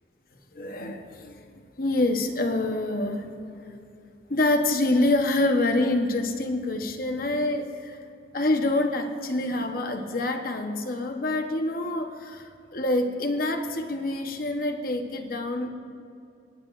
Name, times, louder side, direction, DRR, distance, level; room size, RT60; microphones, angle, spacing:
voice 1, 0.5-1.5 1.8-3.8 4.3-8.0 8.3-15.7, left 2 dB, 50° left, 5 dB, 1.0 m, -26 dB
27.5 x 9.8 x 2.5 m, 2.6 s
head